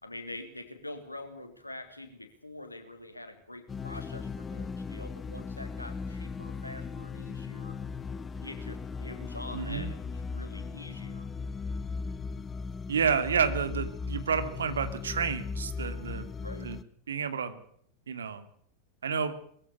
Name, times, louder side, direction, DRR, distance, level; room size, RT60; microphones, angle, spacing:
voice 1, 0.0-7.8 8.4-11.3 16.4-16.7, left 1 dB, 85° left, 7 dB, 3.2 m, -45 dB
sound 1, 3.7-16.8, left 4 dB, 20° left, 1.0 m, -38 dB
voice 2, 9.5-9.9 12.9-16.3 16.6-16.8 17.1-17.6 18.1-18.5 19.0-19.4, right 6 dB, 70° right, 11 dB, 2.4 m, -30 dB
21.5 x 15.0 x 8.4 m, 0.63 s
figure-of-eight pair, 90°, 0 cm